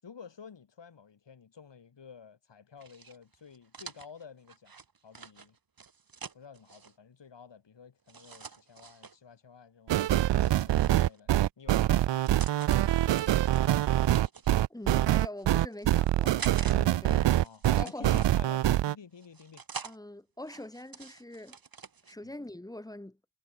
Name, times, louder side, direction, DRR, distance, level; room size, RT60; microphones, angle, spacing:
voice 1, 0.0-4.8 5.0-5.6 6.3-10.0 10.3-13.4 17.0-19.6 22.2-22.3, left 6 dB, 85° left, 6.0 m, -51 dB
sound 1, 2.8-6.9 8.1-9.2 10.0-11.2 11.9-12.8 13.1-14.6 15.3-16.8 17.1-18.6 19.2-20.0 20.4-22.1, right 5 dB, 55° right, 2.6 m, -46 dB
sound 2, 9.9-19.0, right 13 dB, 85° right, 0.5 m, -25 dB
voice 2, 14.7-17.3 17.7-18.2 19.8-21.6 22.1-23.2, left 1 dB, 10° left, 1.1 m, -43 dB
wide cardioid pair, 85°, 42 cm